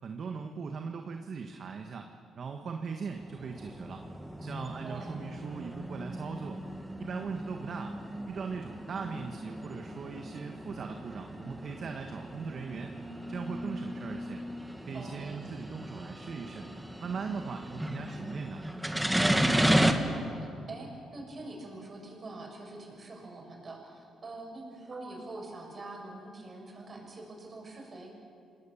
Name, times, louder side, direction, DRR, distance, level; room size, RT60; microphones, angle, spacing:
voice 1, 0.0-4.0 4.4-6.6 7.0-7.9 8.3-13.0 13.3-14.4 14.9-16.7 17.0-18.6, right 5 dB, 55° right, 4 dB, 1.5 m, -39 dB
sound 1, 3.1-19.9, equal, 5° right, 1.7 m, -34 dB
voice 2, 4.8-5.3 14.9-15.4 19.3-28.1, right 2 dB, 35° right, 0 dB, 7.4 m, -45 dB
28.0 x 19.0 x 7.3 m, 2.5 s
cardioid pair, 90°, 0 cm